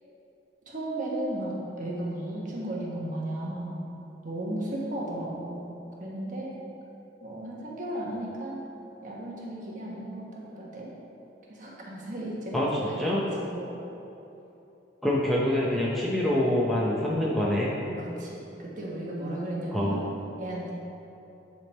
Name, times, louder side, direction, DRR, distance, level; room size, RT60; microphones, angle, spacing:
voice 1, 0.7-3.8 4.2-6.5 7.2-8.6 9.0-10.9 11.5-13.2 13.5-13.7 17.9-20.1 20.4-20.7, right 1 dB, 45° right, -5 dB, 1.3 m, -35 dB
voice 2, 15.0-17.7 19.7-20.1, left 1 dB, ahead, -6 dB, 0.6 m, -25 dB
9.4 x 3.5 x 4.2 m, 2.9 s
head